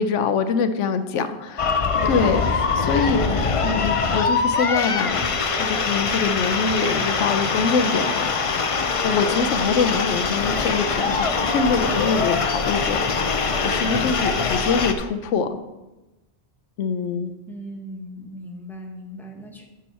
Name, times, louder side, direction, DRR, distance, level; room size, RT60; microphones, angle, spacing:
voice 1, 0.0-5.2 5.6-13.0 13.6-15.6 16.8-17.3, left 5 dB, 85° left, 10 dB, 1.0 m, -24 dB
sound 1, 1.6-14.9, left 4 dB, 40° left, 0.5 m, -23 dB
sound 2, 5.3-14.9, right 1 dB, 35° right, 3.8 m, -39 dB
voice 2, 17.5-19.7, equal, ahead, 0 dB, 1.3 m, -38 dB
10.0 x 6.3 x 4.2 m, 1.0 s
omnidirectional pair, 1.2 m